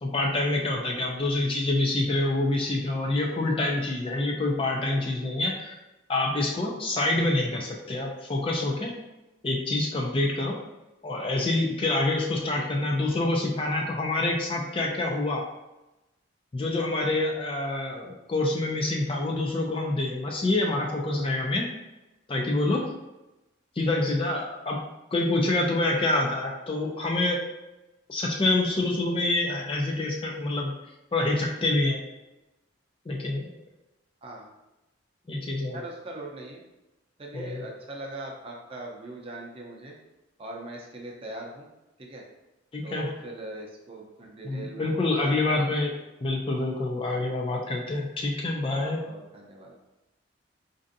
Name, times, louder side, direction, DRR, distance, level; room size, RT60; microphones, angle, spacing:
voice 1, 0.0-5.8 6.1-8.9 9.4-10.6 11.0-15.5 16.5-21.7 22.3-22.9 23.8-24.8 25.1-27.4 28.1-30.7 31.1-32.0 33.1-33.5 35.3-35.8 37.3-37.7 42.7-43.1 44.4-45.9 46.2-49.0, left 2 dB, 25° left, 0 dB, 0.4 m, -26 dB
voice 2, 0.6-1.0 34.2-34.5 35.7-36.6 37.2-39.9 40.4-41.7 42.0-42.2 42.8-45.8 48.7-49.7, right 1 dB, 30° right, -1 dB, 0.5 m, -41 dB
4.3 x 2.6 x 2.6 m, 0.99 s
head